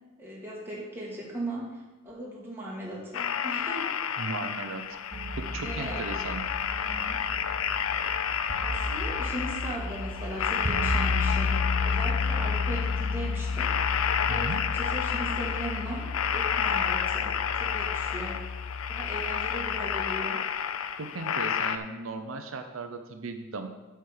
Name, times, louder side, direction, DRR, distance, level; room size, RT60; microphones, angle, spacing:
voice 1, 0.2-3.9 4.2-4.3 5.6-6.1 6.8-7.2 8.6-13.7 14.2-17.3 17.6-18.4 18.9-20.4, right 1 dB, 10° right, -5 dB, 1.8 m, -38 dB
sound 1, 3.1-21.8, left 8 dB, 85° left, 0.5 m, -30 dB
voice 2, 4.2-4.9 5.4-6.4 14.3-14.6 21.0-23.7, right 3 dB, 70° right, 6 dB, 0.7 m, -36 dB
sound 2, 5.1-19.8, left 3 dB, 35° right, 0.9 m, -33 dB
8.2 x 4.6 x 6.5 m, 1.1 s
head